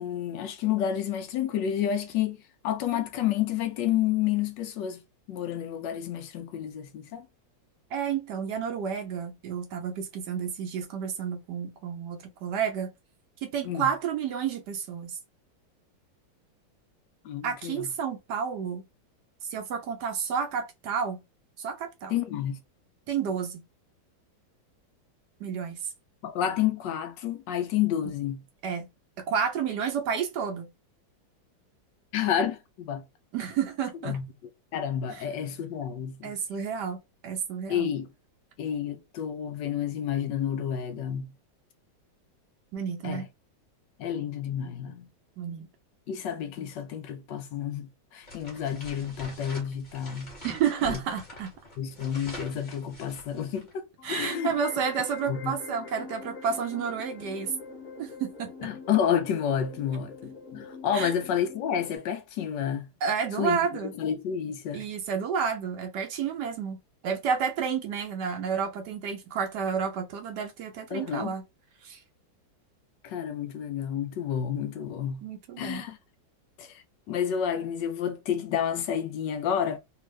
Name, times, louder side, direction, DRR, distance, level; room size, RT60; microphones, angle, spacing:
voice 1, 0.0-2.4 2.6-5.0 5.3-7.3 13.6-13.9 17.2-17.9 22.1-22.6 26.2-28.4 32.1-33.0 34.0-34.3 34.7-36.3 37.7-38.1 38.6-41.3 43.0-43.3 44.0-45.0 46.1-50.3 50.9-51.0 51.8-54.5 55.3-55.6 58.6-62.9 63.4-63.6 64.0-64.8 70.9-71.3 73.0-75.3 75.6-76.0 76.6-79.8, left 9 dB, 75° left, 1.2 m, -30 dB
voice 2, 7.9-12.9 13.4-15.2 17.4-18.9 19.5-21.2 21.6-22.1 23.1-23.6 25.4-25.8 28.6-28.9 29.3-30.7 33.3-34.2 36.2-37.9 42.7-43.3 45.4-45.7 50.4-51.5 54.0-57.5 58.0-58.7 60.9-61.1 63.0-63.9 64.7-66.8 67.0-71.4 71.8-72.0 75.2-75.9, right 7 dB, 70° right, 1.2 m, -30 dB
sound 1, 48.2-53.7, equal, 25° left, 1.5 m, -45 dB
sound 2, 54.0-62.0, left 4 dB, 40° left, 1.6 m, -44 dB
3.5 x 2.4 x 3.1 m
omnidirectional pair, 2.1 m